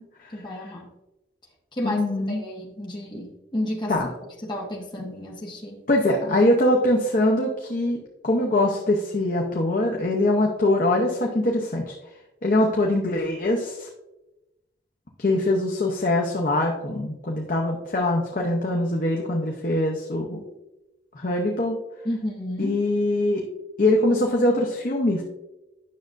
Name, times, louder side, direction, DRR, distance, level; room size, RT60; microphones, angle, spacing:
voice 1, 0.3-0.9 1.7-3.9 4.4-5.8 22.0-22.8, left 1 dB, 25° left, -2 dB, 1.1 m, -31 dB
voice 2, 1.8-2.4 3.9-4.1 5.9-11.9 12.4-13.9 15.2-20.5 21.1-21.8 22.6-23.4 23.8-25.2, left 1 dB, 45° left, 0 dB, 0.7 m, -23 dB
9.5 x 6.3 x 2.5 m, 0.96 s
head